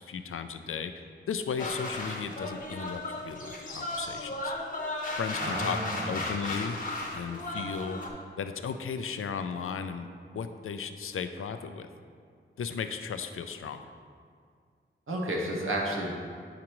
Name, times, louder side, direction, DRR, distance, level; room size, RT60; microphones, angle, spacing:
voice 1, 0.0-4.5 5.1-5.8 6.1-8.0 8.4-10.1 10.3-11.9 12.6-13.8, left 6 dB, 85° left, 8 dB, 0.4 m, -35 dB
sound 1, 1.6-8.1, left 2 dB, 40° left, 1.0 m, -35 dB
voice 2, 5.4-6.3 15.1-16.1, right 1 dB, 80° right, -2 dB, 1.1 m, -32 dB
9.5 x 5.0 x 3.0 m, 2.1 s
wide cardioid pair, 90°, 21 cm